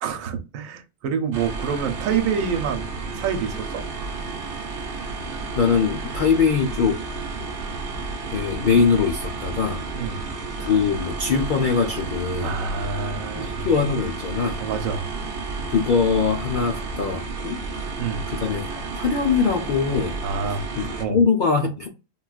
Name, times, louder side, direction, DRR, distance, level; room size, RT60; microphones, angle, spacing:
voice 1, 0.0-2.9 3.1-3.8 9.9-10.2 12.4-13.7 14.6-15.1 18.0-18.3 20.2-20.7 21.0-21.2, right 6 dB, 70° right, 1.0 m, -27 dB
sound 1, 1.3-21.0, right 4 dB, 55° right, 0.7 m, -32 dB
voice 2, 5.6-7.0 8.3-9.8 10.6-12.6 13.4-14.6 15.7-17.6 18.3-20.2 20.8-21.9, left 5 dB, 85° left, 0.4 m, -22 dB
3.9 x 2.3 x 2.3 m
omnidirectional pair, 1.5 m